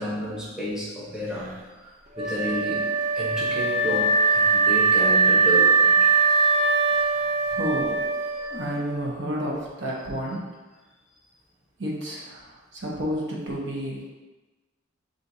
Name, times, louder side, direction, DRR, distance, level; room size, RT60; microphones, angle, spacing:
voice 1, 0.0-6.1, equal, 5° right, -8 dB, 0.9 m, -32 dB
Wind instrument woodwind instrument, 2.2-9.2, right 4 dB, 40° right, 0.7 m, -21 dB
voice 2, 7.5-8.0 8.4-10.5 11.8-14.1, equal, 65° right, -3 dB, 1.0 m, -31 dB
7.4 x 2.6 x 2.7 m, 1.2 s
head